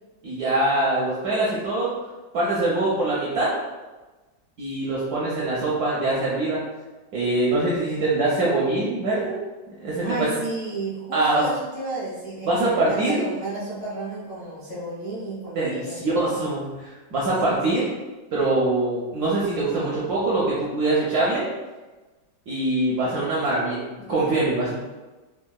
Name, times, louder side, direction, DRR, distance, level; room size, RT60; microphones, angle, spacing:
voice 1, 0.2-1.9 2.3-3.5 4.6-6.6 7.1-9.4 9.8-10.3 11.1-11.4 12.5-13.2 15.6-17.8 18.3-21.5 22.5-24.7, right 2 dB, 75° right, -6 dB, 0.9 m, -23 dB
voice 2, 10.0-16.4 17.5-17.9, right 2 dB, 35° left, -10 dB, 0.5 m, -32 dB
3.7 x 2.2 x 2.2 m, 1.2 s
omnidirectional pair, 2.2 m